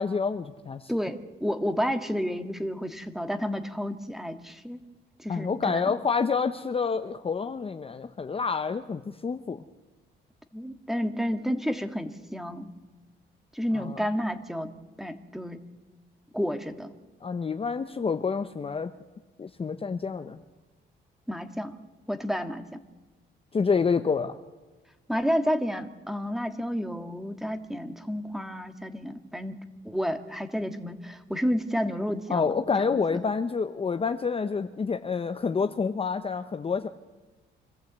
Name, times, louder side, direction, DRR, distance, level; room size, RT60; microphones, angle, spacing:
voice 1, 0.0-0.9 5.3-9.6 13.8-14.0 17.2-18.9 19.4-20.4 23.5-24.4 32.3-36.9, left 5 dB, 30° left, 8 dB, 0.8 m, -28 dB
voice 2, 0.9-4.8 5.2-5.9 10.5-12.7 13.5-14.7 15.0-15.6 16.3-16.9 21.3-21.7 22.1-22.8 25.1-33.2, equal, ahead, 8 dB, 1.6 m, -31 dB
25.5 x 14.0 x 8.1 m, 1.2 s
cardioid pair, 90°, 20 cm